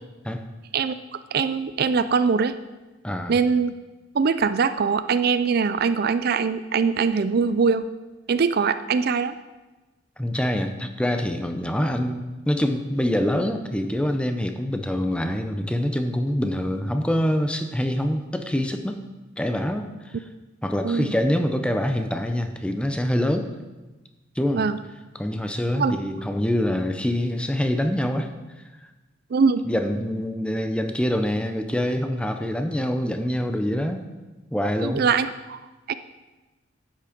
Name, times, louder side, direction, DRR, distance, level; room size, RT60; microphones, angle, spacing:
voice 1, 1.3-2.5 3.3-3.7 4.1-7.9 8.3-9.4 20.8-21.1 24.5-24.8 25.8-26.0 29.3-29.6 34.8-35.6 35.9-36.0, right 5 dB, 50° right, 12 dB, 0.4 m, -22 dB
voice 2, 3.0-3.4 10.2-19.0 19.4-20.2 20.6-23.5 24.4-24.7 25.1-28.3 29.6-34.0 34.5-35.0, equal, 5° left, 6 dB, 0.7 m, -25 dB
12.0 x 8.6 x 5.1 m, 1.1 s
head